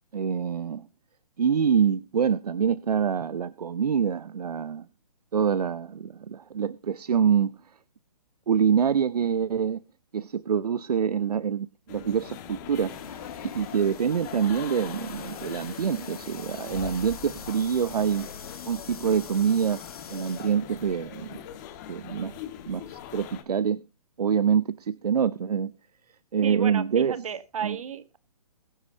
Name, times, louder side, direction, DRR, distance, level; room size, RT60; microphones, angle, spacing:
voice 1, 0.1-0.9 1.4-4.9 5.3-7.5 8.5-9.8 10.1-13.0 13.4-18.3 18.7-19.8 20.1-21.4 21.9-22.3 22.7-23.8 24.2-25.7 26.3-27.2 27.6-27.8, right 7 dB, 80° right, 0.6 m, -25 dB
sound 1, 11.9-23.4, left 10 dB, 30° left, 1.5 m, -42 dB
sound 2, 12.9-20.6, left 6 dB, 70° left, 1.8 m, -45 dB
voice 2, 26.4-28.2, right 8 dB, 60° right, 1.3 m, -33 dB
21.5 x 8.1 x 2.7 m
hypercardioid pair, 145°, 20 cm